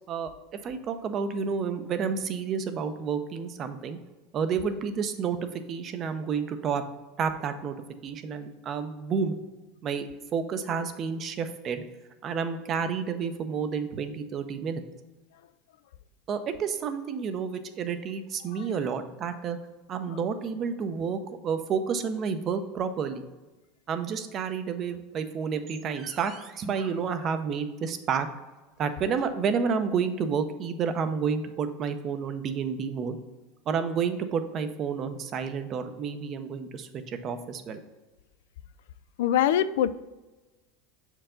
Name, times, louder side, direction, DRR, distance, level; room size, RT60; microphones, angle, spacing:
voice 1, 0.6-4.0 4.3-6.8 7.2-7.8 8.0-9.3 9.8-11.8 12.2-14.8 16.3-19.6 19.9-23.2 23.9-28.3 28.8-33.2 33.7-37.8, right 6 dB, 35° right, 9 dB, 0.6 m, -30 dB
voice 2, 39.2-39.9, left 10 dB, 80° left, 14 dB, 0.3 m, -23 dB
6.6 x 4.6 x 3.7 m, 1.2 s
supercardioid pair, 135°, 0 cm